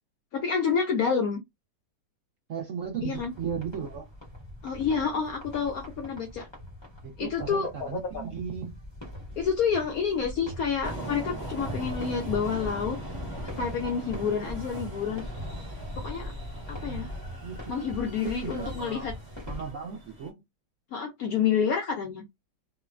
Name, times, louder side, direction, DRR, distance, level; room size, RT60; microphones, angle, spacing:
voice 1, 0.3-1.4 3.0-3.3 4.6-6.5 7.2-8.2 9.4-13.0 13.6-15.2 16.0-16.3 16.7-17.1 17.7-19.1 20.9-22.2, left 6 dB, 70° left, 0.8 m, -28 dB
voice 2, 2.5-4.1 7.0-8.8 16.8-17.2 17.4-17.9 18.2-19.1 19.5-20.4, right 7 dB, 65° right, 0.7 m, -36 dB
sound 1, 3.1-19.7, left 1 dB, 25° left, 0.6 m, -41 dB
sound 2, 10.8-20.3, right 2 dB, 25° right, 0.4 m, -41 dB
3.0 x 2.1 x 2.3 m
omnidirectional pair, 2.0 m